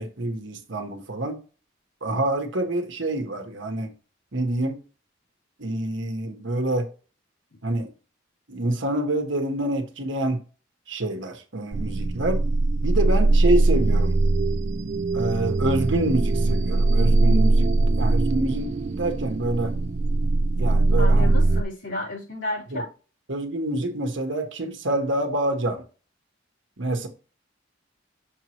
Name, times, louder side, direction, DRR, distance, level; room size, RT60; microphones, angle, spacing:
voice 1, 0.0-1.4 2.0-3.9 4.3-4.8 5.6-6.9 7.6-7.9 8.5-10.4 10.9-12.4 12.8-14.2 15.1-17.7 18.0-19.7 20.6-21.3 22.7-22.8 23.3-25.8 26.8-27.1, right 1 dB, 65° right, 1.2 m, -26 dB
sound 1, 11.7-21.6, right 2 dB, 35° right, 0.3 m, -21 dB
voice 2, 21.0-22.9, left 1 dB, 70° left, 3.2 m, -32 dB
6.7 x 4.7 x 3.0 m
head